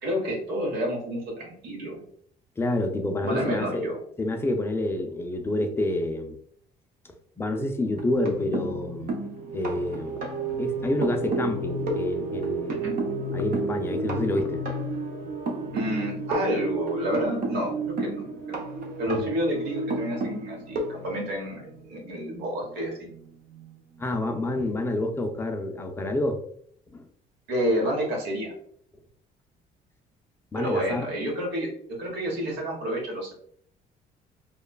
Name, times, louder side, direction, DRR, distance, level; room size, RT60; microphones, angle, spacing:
voice 1, 0.0-2.0 3.2-4.0 12.7-13.0 15.7-18.2 18.5-18.6 19.0-23.0 27.5-28.5 30.5-31.7 32.0-33.3, equal, 80° right, -1 dB, 1.0 m, -29 dB
voice 2, 2.6-3.9 4.2-6.4 7.0-9.1 9.5-10.2 10.6-12.8 13.3-14.6 19.1-19.3 24.0-26.4 26.9-27.0 30.5-31.1, left 1 dB, 15° left, 4 dB, 0.4 m, -28 dB
sound 1, 7.9-21.8 23.1-23.2 23.5-23.7, right 2 dB, 55° right, 0.6 m, -31 dB
3.0 x 2.1 x 2.2 m, 0.63 s
cardioid pair, 110°, 17 cm